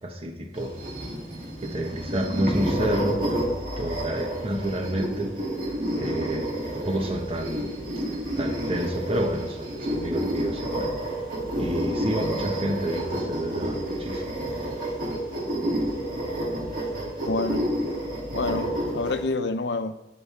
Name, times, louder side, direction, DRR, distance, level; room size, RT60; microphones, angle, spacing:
voice 1, 0.0-0.7 1.6-3.5 3.8-5.3 6.0-7.7 8.4-10.9 11.6-14.3, right 1 dB, 35° right, 3 dB, 1.4 m, -29 dB
sound 1, 0.5-19.2, right 1 dB, 50° right, 2.7 m, -30 dB
voice 2, 17.2-17.7 18.3-20.0, left 3 dB, 85° left, 10 dB, 0.7 m, -28 dB
18.5 x 6.7 x 3.6 m, 0.93 s
head